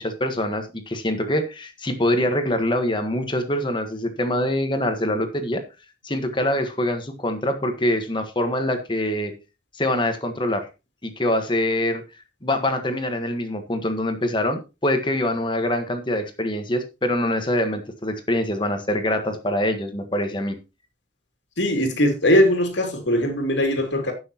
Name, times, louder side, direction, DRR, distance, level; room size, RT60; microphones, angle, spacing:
voice 1, 0.0-5.6 6.0-9.3 9.8-10.7 11.0-12.0 12.4-20.6, left 1 dB, 25° left, 1.4 m, -24 dB
voice 2, 21.6-24.1, left 1 dB, 90° left, 2.8 m, -20 dB
16.0 x 6.4 x 3.0 m
head